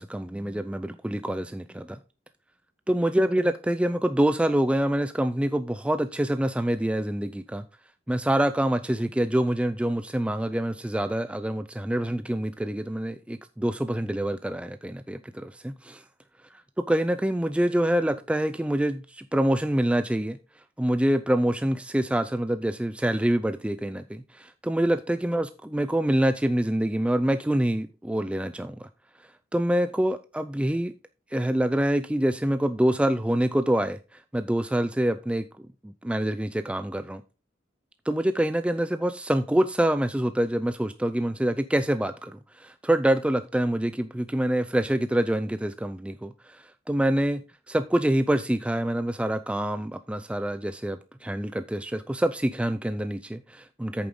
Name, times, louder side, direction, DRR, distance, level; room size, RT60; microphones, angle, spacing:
voice 1, 0.0-2.0 2.9-7.6 8.1-16.0 16.5-20.4 20.8-28.9 29.5-30.9 31.3-35.4 35.8-37.2 38.1-47.4 47.7-54.1, right 1 dB, 5° right, 0.3 m, -26 dB
8.7 x 7.0 x 3.7 m
head